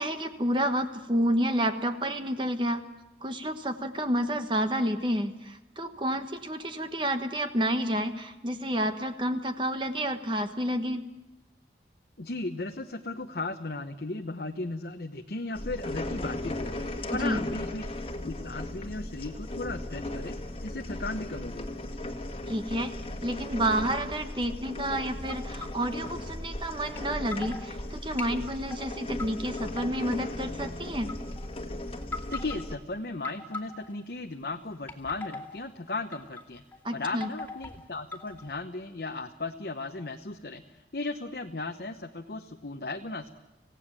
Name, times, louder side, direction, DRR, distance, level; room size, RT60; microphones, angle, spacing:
voice 1, 0.0-2.8 3.2-11.0 17.1-17.4 22.5-22.9 23.2-31.1 36.8-37.3, equal, 25° right, 7 dB, 1.3 m, -30 dB
voice 2, 12.2-16.8 17.1-17.9 18.2-21.7 32.3-36.6 36.9-43.3, left 2 dB, 60° left, 4 dB, 1.0 m, -36 dB
sound 1, 15.5-32.8, left 1 dB, 30° left, 1.6 m, -37 dB
sound 2, 25.3-26.1 27.0-27.1 27.3-27.7 28.2-29.3 29.6-30.3 31.0-31.5 32.0-32.7 33.2-34.1 34.7-35.6 36.1-36.4 36.7-38.6, left 3 dB, 10° left, 2.5 m, -40 dB
26.5 x 17.0 x 7.5 m, 1.0 s
head